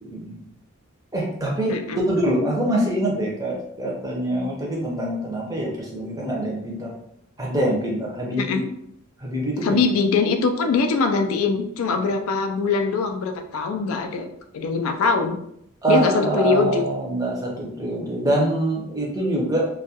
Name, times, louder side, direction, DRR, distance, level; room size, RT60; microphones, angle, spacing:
voice 1, 0.1-0.4 1.1-1.7 2.1-6.9 7.4-8.6 9.2-9.8 15.8-19.7, right 1 dB, 15° right, -2 dB, 0.5 m, -24 dB
voice 2, 1.7-2.1 8.4-8.6 9.6-14.3 14.5-15.4 15.9-16.8, left 4 dB, 70° left, 5 dB, 0.3 m, -22 dB
2.2 x 2.2 x 2.7 m, 0.74 s
head